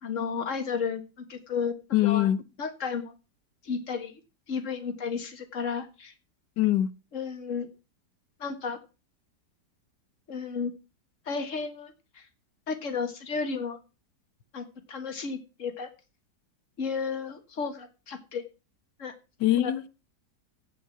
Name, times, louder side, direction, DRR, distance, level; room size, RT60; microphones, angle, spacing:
voice 1, 0.0-1.0 1.3-1.7 2.0-2.3 2.6-3.1 3.6-4.2 4.5-6.1 7.1-7.7 8.4-8.8 10.3-10.7 11.2-12.3 12.7-13.8 14.5-15.9 16.8-18.4 19.0-19.1 19.5-19.7, left 5 dB, 45° left, 1.8 m, -33 dB
voice 2, 1.9-2.4 6.6-6.9 19.4-19.9, left 13 dB, 85° left, 1.4 m, -23 dB
16.0 x 5.6 x 5.9 m
omnidirectional pair, 1.8 m